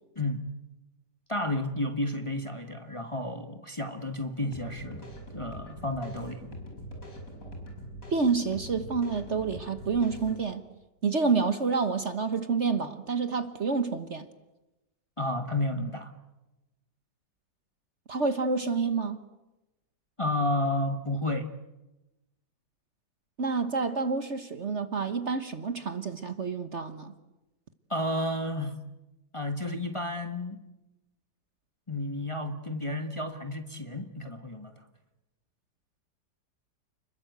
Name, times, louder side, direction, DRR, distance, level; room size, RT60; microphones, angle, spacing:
voice 1, 0.1-0.5 1.3-5.0 5.3-6.4 15.2-16.1 20.2-21.5 27.9-28.8 29.3-30.6 31.9-34.7, left 1 dB, 20° left, 6 dB, 1.3 m, -31 dB
sound 1, 4.4-10.4, equal, 50° left, 5.9 m, -43 dB
voice 2, 8.1-10.6 11.0-14.3 18.1-19.2 23.4-27.1, right 4 dB, 45° right, 9 dB, 1.3 m, -28 dB
30.0 x 21.5 x 8.1 m, 1.0 s
omnidirectional pair, 1.9 m